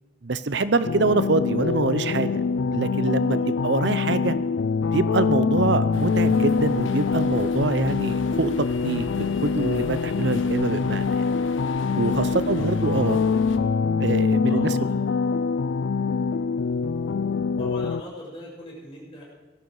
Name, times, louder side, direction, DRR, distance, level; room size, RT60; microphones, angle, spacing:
voice 1, 0.2-2.4 2.7-4.4 4.9-8.5 8.8-11.0 11.9-13.2 14.0-14.7, right 3 dB, 65° right, 14 dB, 0.8 m, -25 dB
sound 1, 0.8-18.0, left 5 dB, 70° left, 0.4 m, -24 dB
voice 2, 3.2-3.5 12.2-13.6 14.3-15.0 17.6-19.2, left 1 dB, 30° left, -5 dB, 6.8 m, -42 dB
sound 2, 5.9-13.6, left 2 dB, 85° left, 1.2 m, -38 dB
18.5 x 13.5 x 4.9 m, 1.2 s
head